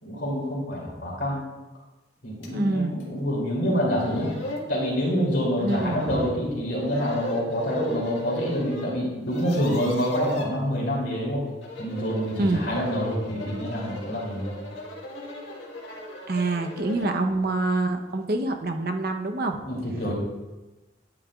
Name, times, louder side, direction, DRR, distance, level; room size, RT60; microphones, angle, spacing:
voice 1, 0.0-1.5 2.2-4.3 4.7-11.4 11.8-14.6 19.6-20.1, equal, 65° left, -4 dB, 2.9 m, -27 dB
sound 1, 2.4-2.5 3.0-3.1 3.7-3.8 4.0-4.7 5.6-6.3 6.8-8.9 9.2-10.5 11.5-17.2, left 1 dB, 90° left, 1.8 m, -38 dB
voice 2, 2.5-3.0 5.6-6.3 12.4-12.7 16.3-19.6, right 2 dB, 55° right, 5 dB, 0.8 m, -26 dB
10.0 x 9.0 x 2.4 m, 1.1 s
head